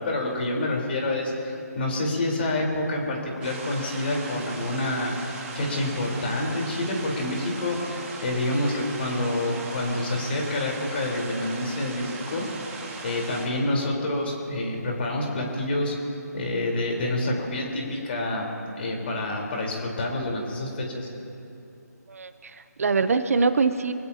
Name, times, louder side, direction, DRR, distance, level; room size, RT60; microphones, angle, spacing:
voice 1, 0.0-5.1 5.5-7.8 8.2-15.9 16.3-21.1, left 1 dB, 35° left, -1 dB, 4.1 m, -28 dB
sound 1, 3.4-13.5, right 3 dB, 10° right, 1.9 m, -39 dB
voice 2, 22.1-23.9, right 4 dB, 55° right, 10 dB, 0.9 m, -24 dB
26.0 x 16.0 x 2.9 m, 2.7 s
figure-of-eight pair, 160°, 9 cm